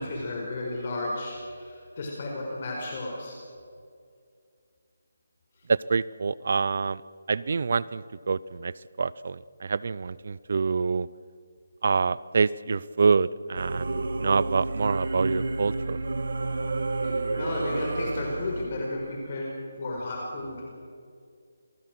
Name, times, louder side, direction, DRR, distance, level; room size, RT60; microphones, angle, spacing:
voice 1, 0.0-3.4 17.0-19.5 19.8-20.6, left 2 dB, 40° left, -1 dB, 4.9 m, -33 dB
voice 2, 5.7-7.0 7.3-11.1 11.8-16.0, right 5 dB, 55° right, 20 dB, 0.6 m, -26 dB
Singing / Musical instrument, 13.5-18.7, right 2 dB, 70° right, 2.1 m, -30 dB
27.5 x 19.0 x 6.2 m, 2.3 s
hypercardioid pair, 165°, 0 cm